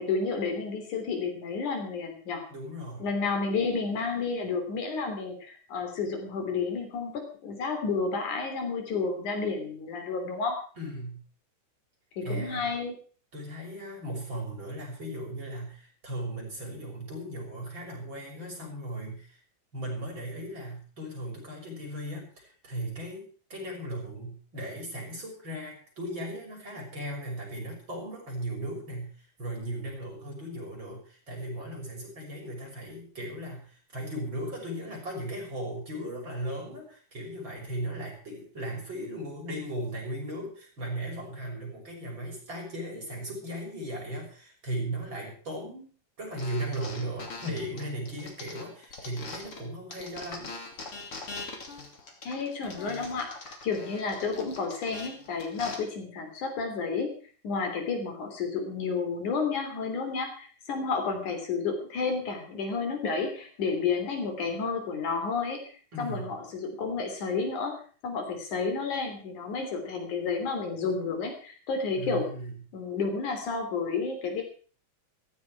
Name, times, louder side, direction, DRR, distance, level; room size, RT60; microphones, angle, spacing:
voice 1, 0.0-2.4 3.0-10.6 12.2-13.0 52.2-53.4 53.6-57.2 57.4-65.6 66.0-67.8 68.0-72.3 72.7-74.4, left 4 dB, 75° left, 5 dB, 4.7 m, -31 dB
voice 2, 2.5-3.1 10.8-11.2 12.2-12.7 13.3-19.4 19.7-45.9 46.2-50.5 65.9-66.3 72.0-72.5, right 1 dB, 35° right, -1 dB, 7.2 m, -37 dB
sound 1, 46.4-49.6 49.9-55.7, left 3 dB, 45° left, 3.7 m, -42 dB
16.0 x 15.0 x 4.7 m, 0.42 s
omnidirectional pair, 3.6 m